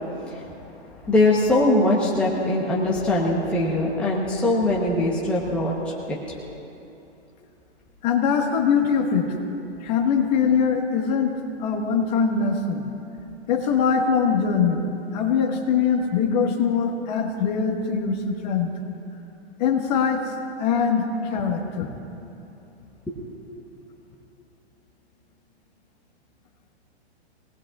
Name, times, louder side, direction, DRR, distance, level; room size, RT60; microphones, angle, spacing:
voice 1, 1.0-6.2 23.1-23.2, left 2 dB, 5° left, -5 dB, 1.0 m, -22 dB
voice 2, 8.0-9.4 9.8-12.9 13.5-14.9 15.1-18.7 19.6-20.3 20.6-21.9, left 6 dB, 35° left, 2 dB, 1.6 m, -22 dB
25.0 x 19.0 x 2.4 m, 2.9 s
hypercardioid pair, 160°, 33 cm